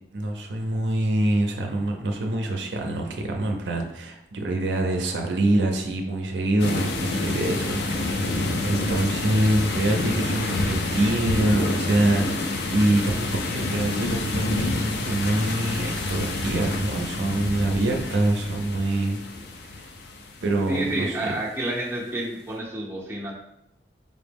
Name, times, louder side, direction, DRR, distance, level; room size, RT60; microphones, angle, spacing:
voice 1, 0.1-19.2 19.7-19.9 20.4-21.1, right 1 dB, 80° right, 2 dB, 0.5 m, -25 dB
sound 1, 6.6-21.2, left 2 dB, 65° left, 0.4 m, -28 dB
voice 2, 20.7-23.3, right 1 dB, 15° right, -5 dB, 0.8 m, -29 dB
5.0 x 2.0 x 3.4 m, 0.84 s
head